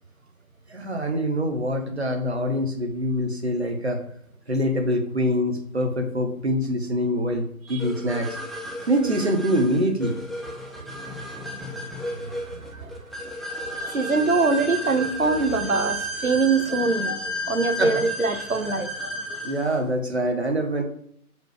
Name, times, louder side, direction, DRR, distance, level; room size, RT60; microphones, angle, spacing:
voice 1, 0.7-4.0 4.5-8.4 8.9-10.2 17.8-17.9 19.4-20.8, equal, 45° right, 4 dB, 1.6 m, -24 dB
sound 1, 7.8-19.8, right 1 dB, ahead, 0.5 m, -33 dB
voice 2, 10.6-13.0 13.8-19.4, right 3 dB, 65° right, 8 dB, 1.3 m, -25 dB
7.8 x 5.1 x 5.2 m, 0.66 s
figure-of-eight pair, 170°, 45 cm